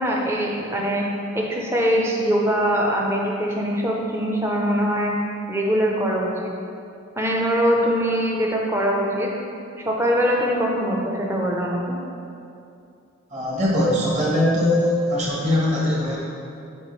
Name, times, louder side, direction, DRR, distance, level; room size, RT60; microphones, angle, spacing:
voice 1, 0.0-5.1 5.5-6.5 7.2-9.3 9.8-12.0, equal, 10° right, -1 dB, 0.6 m, -22 dB
voice 2, 13.3-16.2, left 1 dB, 35° right, -5 dB, 1.2 m, -21 dB
7.8 x 4.1 x 3.1 m, 2.5 s
head